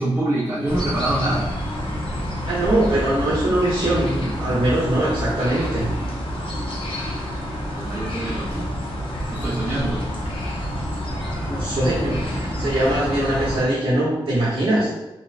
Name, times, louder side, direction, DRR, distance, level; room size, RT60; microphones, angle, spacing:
voice 1, 0.0-1.5 7.7-8.7 9.3-10.1, right 1 dB, 20° right, -8 dB, 0.5 m, -25 dB
sound 1, 0.7-13.6, equal, 70° left, 0.6 m, -28 dB
voice 2, 2.5-5.9 11.4-14.9, right 1 dB, 75° right, -9 dB, 0.7 m, -22 dB
2.9 x 2.0 x 2.4 m, 1.0 s
wide cardioid pair, 115°, 10 cm